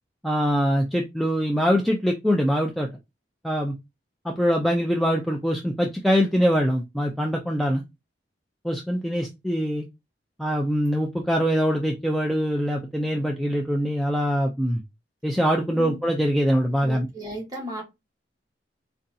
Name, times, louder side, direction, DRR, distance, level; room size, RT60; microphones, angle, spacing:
voice 1, 0.2-2.9 3.4-3.7 4.2-7.8 8.6-9.9 10.4-14.8 15.2-17.1, equal, ahead, 1 dB, 0.3 m, -23 dB
voice 2, 16.8-17.8, equal, 20° right, -2 dB, 1.2 m, -35 dB
3.9 x 2.3 x 2.6 m, 0.22 s
head